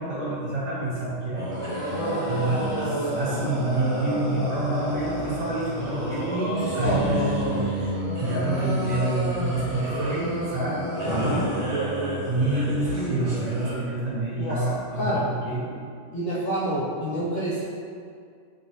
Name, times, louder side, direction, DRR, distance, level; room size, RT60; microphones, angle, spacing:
voice 1, 0.0-1.8 2.3-7.7 8.2-11.5 12.3-15.9, right 2 dB, 80° right, -8 dB, 1.1 m, -28 dB
sound 1, 1.3-13.7, right 1 dB, 35° right, 0.6 m, -29 dB
voice 2, 6.6-7.3 11.1-11.5 14.4-14.7 14.9-15.2 16.1-17.6, equal, 60° left, -8 dB, 0.6 m, -28 dB
3.7 x 2.0 x 2.6 m, 2.3 s
omnidirectional pair, 1.3 m